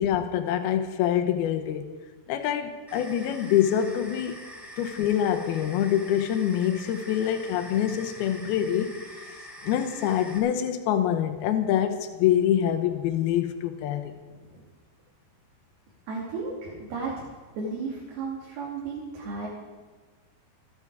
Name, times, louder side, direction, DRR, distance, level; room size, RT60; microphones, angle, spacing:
voice 1, 0.0-1.9 2.3-4.5 4.8-9.2 9.6-14.2, left 10 dB, 80° left, 6 dB, 2.9 m, -25 dB
sound 1, 2.9-10.4, equal, ahead, 5.7 m, -44 dB
voice 2, 16.1-17.3 17.5-19.5, right 4 dB, 85° right, -4 dB, 4.6 m, -34 dB
28.5 x 9.7 x 4.8 m, 1.4 s
omnidirectional pair, 4.4 m